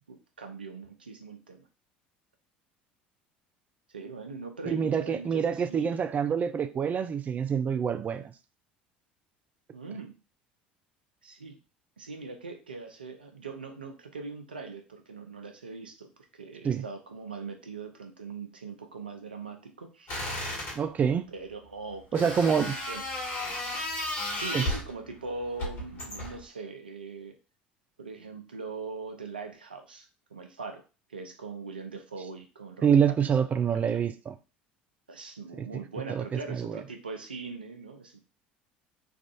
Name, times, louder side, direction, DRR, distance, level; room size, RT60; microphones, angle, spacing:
voice 1, 0.1-1.6 3.9-6.0 9.7-10.1 11.2-11.6 12.0-16.1 16.4-20.3 21.3-23.0 24.3-27.3 28.0-30.1 30.3-30.8 31.1-33.4 33.9-34.0 35.1-38.2, right 4 dB, 90° right, 0.5 m, -41 dB
voice 2, 4.7-8.3 16.6-16.8 20.8-21.2 22.1-22.7 24.5-24.6 32.8-34.3 35.6-35.7 36.1-36.8, right 7 dB, 30° right, 0.4 m, -26 dB
sound 1, 20.1-20.8 22.1-24.9 25.6-26.4, left 1 dB, 55° left, 1.8 m, -33 dB
3.5 x 2.4 x 2.3 m
hypercardioid pair, 65°, 5 cm